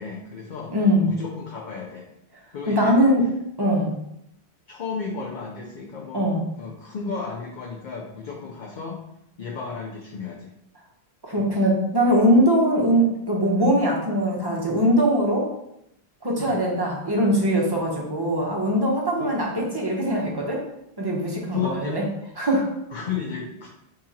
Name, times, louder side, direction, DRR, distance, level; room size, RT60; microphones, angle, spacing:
voice 1, 0.0-0.7 1.1-2.1 2.5-3.0 4.7-6.3 6.6-9.0 9.4-10.5 11.3-11.6 16.4-16.6 19.2-19.3 21.5-22.0 22.9-23.7, left 6 dB, 55° left, -1 dB, 0.6 m, -33 dB
voice 2, 0.7-1.1 2.7-3.2 3.6-4.0 6.1-6.4 11.2-15.5 16.2-20.6 21.0-22.0 22.4-22.7, equal, 25° right, -2 dB, 0.6 m, -21 dB
2.8 x 2.8 x 3.7 m, 0.80 s
omnidirectional pair, 1.1 m